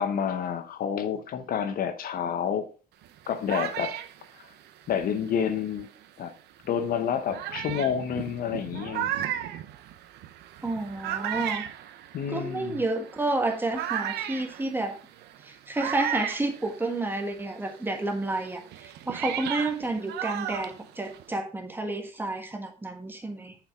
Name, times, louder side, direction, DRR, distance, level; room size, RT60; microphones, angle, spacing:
voice 1, 0.0-2.7 3.3-4.0 4.9-5.9 6.2-6.3 6.7-9.1 12.1-12.8, left 8 dB, 60° left, 0.9 m, -29 dB
sound 1, 3.0-6.1 6.7-6.8 7.3-17.3 17.6-21.4, right 11 dB, 80° right, 0.8 m, -35 dB
voice 2, 10.6-11.6 12.3-15.0 15.4-23.5, right 2 dB, 10° right, 1.5 m, -30 dB
6.8 x 6.3 x 3.6 m
cardioid pair, 110°, 17 cm